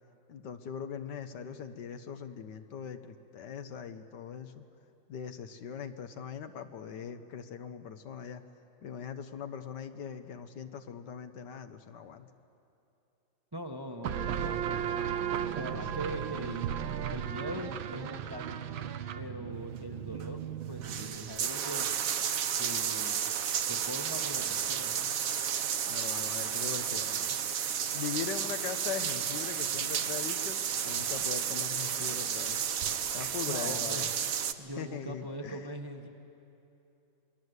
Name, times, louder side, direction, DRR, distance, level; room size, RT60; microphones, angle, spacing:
voice 1, 0.3-4.7 5.1-8.4 8.8-12.3 15.7-16.0 25.9-27.4 27.9-32.6 33.1-34.1 34.7-35.7, left 7 dB, 70° left, 8 dB, 1.5 m, -41 dB
voice 2, 13.5-15.1 15.6-16.6 17.1-18.6 19.2-21.9 22.6-23.3 23.7-25.1 33.5-34.1 34.6-36.1, right 1 dB, 15° right, 3 dB, 1.1 m, -41 dB
sound 1, 14.0-21.4, right 9 dB, 90° right, 1.7 m, -35 dB
sound 2, 20.2-20.3 20.7-34.5, right 8 dB, 55° right, 1.1 m, -32 dB
28.0 x 21.0 x 8.1 m, 2.8 s
omnidirectional pair, 2.1 m